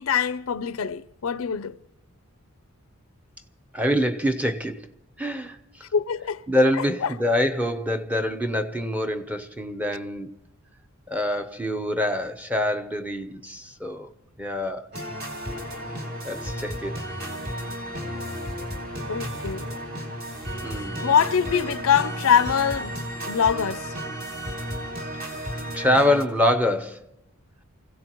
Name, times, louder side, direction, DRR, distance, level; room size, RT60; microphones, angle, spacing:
voice 1, 0.0-1.8 5.9-6.4 7.0-7.1 19.1-19.7 21.0-23.0 23.3-23.9, left 7 dB, 75° left, 0.5 m, -23 dB
voice 2, 3.7-4.9 5.2-5.9 6.5-10.3 11.1-14.1 14.4-14.9 16.2-17.0 20.6-21.0 25.7-27.0, left 1 dB, 5° right, 0.7 m, -25 dB
sound 1, 14.9-26.2, equal, 45° right, 2.8 m, -33 dB
28.5 x 16.5 x 3.0 m
head